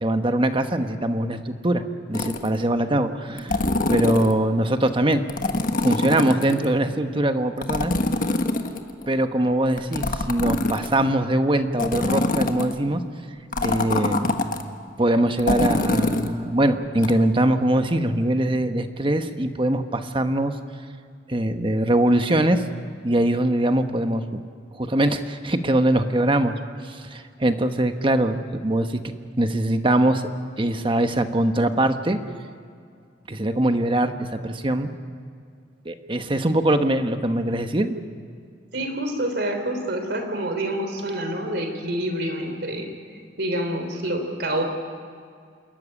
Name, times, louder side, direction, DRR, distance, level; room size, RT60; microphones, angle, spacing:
voice 1, 0.0-3.6 3.9-5.2 5.8-7.9 9.1-13.0 13.6-14.3 15.0-20.5 21.3-22.6 23.0-24.4 24.7-26.5 26.8-30.2 30.6-32.2 33.3-34.9 35.8-38.0, right 1 dB, 30° right, 7 dB, 1.2 m, -22 dB
sound 1, 2.1-2.6 3.4-4.3 5.3-6.7 7.6-9.1 9.8-11.1 11.8-12.8 13.5-14.6 15.4-16.3 17.0-17.1, left 2 dB, 50° left, 1.4 m, -24 dB
voice 2, 38.7-42.9 43.4-44.6, right 1 dB, 65° right, 6 dB, 3.6 m, -27 dB
28.0 x 14.0 x 9.9 m, 2.2 s
head